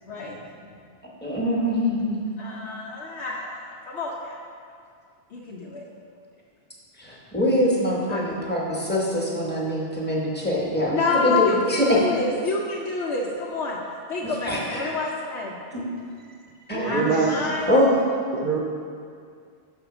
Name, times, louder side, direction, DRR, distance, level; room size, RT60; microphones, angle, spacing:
voice 1, 0.1-0.4 2.4-4.4 5.3-5.9 8.1-8.2 10.9-13.8 14.1-15.6 16.8-17.7, left 3 dB, 85° left, -3 dB, 0.9 m, -28 dB
voice 2, 1.2-2.2 7.0-12.0 14.2-15.0 15.7-15.8 16.7-17.0 17.7-18.0, left 1 dB, 10° left, -5 dB, 1.0 m, -24 dB
voice 3, 16.7-17.6 18.3-18.6, right 5 dB, 60° right, 0 dB, 0.7 m, -24 dB
6.0 x 3.6 x 5.9 m, 2.2 s
omnidirectional pair, 1.1 m